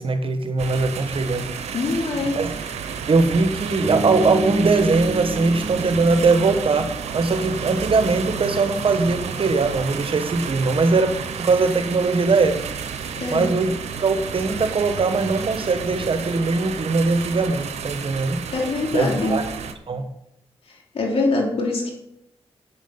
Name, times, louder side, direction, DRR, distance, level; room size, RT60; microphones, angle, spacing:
voice 1, 0.0-1.5 2.3-2.5 3.1-12.6 13.3-13.8 14.0-18.4 18.9-19.4 19.9-20.0, right 3 dB, 55° right, 8 dB, 1.2 m, -21 dB
sound 1, 0.6-19.7, right 6 dB, 90° right, 0.8 m, -31 dB
voice 2, 1.7-2.4 13.2-13.5 18.5-19.4 20.9-21.9, left 3 dB, 65° left, -1 dB, 3.1 m, -23 dB
Bass guitar, 3.8-7.9, right 2 dB, 15° right, 2.8 m, -30 dB
7.7 x 7.2 x 5.7 m, 0.80 s
cardioid pair, 55°, 11 cm